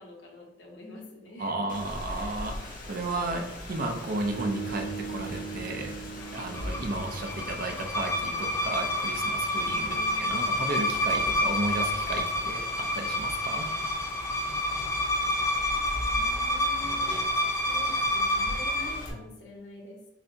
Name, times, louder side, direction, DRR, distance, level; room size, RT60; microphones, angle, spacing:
voice 1, 0.0-1.8 2.1-2.5 9.8-10.4 15.9-17.1 17.6-20.0, left 1 dB, 70° left, -1 dB, 1.1 m, -47 dB
voice 2, 1.4-5.9 6.3-13.7, right 2 dB, 50° right, 3 dB, 0.6 m, -33 dB
Rain, 1.7-19.1, left 1 dB, 50° left, 0.8 m, -41 dB
Bass guitar, 4.3-8.4, right 5 dB, 65° right, 1.5 m, -40 dB
sound 1, 6.4-19.0, left 1 dB, 15° left, 0.3 m, -29 dB
6.4 x 2.2 x 2.7 m, 1.0 s
head